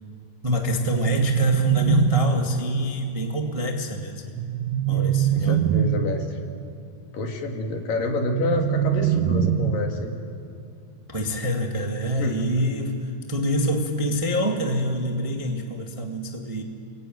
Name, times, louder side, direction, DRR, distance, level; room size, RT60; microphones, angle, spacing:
voice 1, 0.4-4.3 4.9-5.7 11.1-16.6, equal, 20° right, 2 dB, 0.8 m, -26 dB
sound 1, 0.7-2.7 4.4-6.3 8.1-10.0, right 9 dB, 75° right, 2.6 m, -23 dB
voice 2, 4.9-6.4 7.1-10.1 12.2-12.5, left 3 dB, 70° left, 2 dB, 3.9 m, -29 dB
28.5 x 22.0 x 9.3 m, 2.4 s
omnidirectional pair, 4.1 m